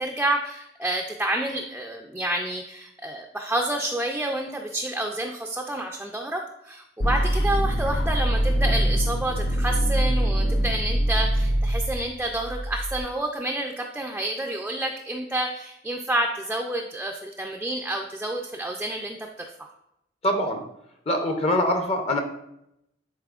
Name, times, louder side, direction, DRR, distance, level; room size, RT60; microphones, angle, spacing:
voice 1, 0.0-19.3 19.6-19.7, right 1 dB, 5° right, 1 dB, 0.4 m, -29 dB
sound 1, 7.0-13.0, equal, 90° left, 0.8 m, -24 dB
voice 2, 20.2-20.6 21.1-22.2, left 1 dB, 35° left, 4 dB, 0.6 m, -23 dB
10.5 x 4.1 x 2.4 m, 0.81 s
head